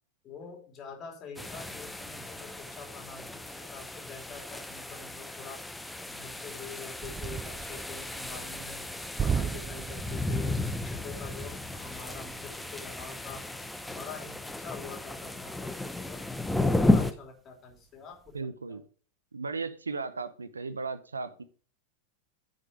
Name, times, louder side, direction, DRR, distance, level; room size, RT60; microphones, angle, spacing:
voice 1, 0.2-5.6 6.1-8.9 9.2-13.4 13.9-18.8, left 5 dB, 30° left, 4 dB, 3.0 m, -46 dB
sound 1, 1.4-17.1, left 2 dB, 5° left, 0.9 m, -33 dB
sound 2, 7.0-16.7 17.1-17.3 17.7-18.4, right 6 dB, 20° right, 0.4 m, -39 dB
voice 2, 18.3-18.8 19.3-21.4, right 4 dB, 75° right, 14 dB, 0.8 m, -36 dB
9.4 x 6.6 x 5.1 m, 0.41 s
figure-of-eight pair, 90°, 0 cm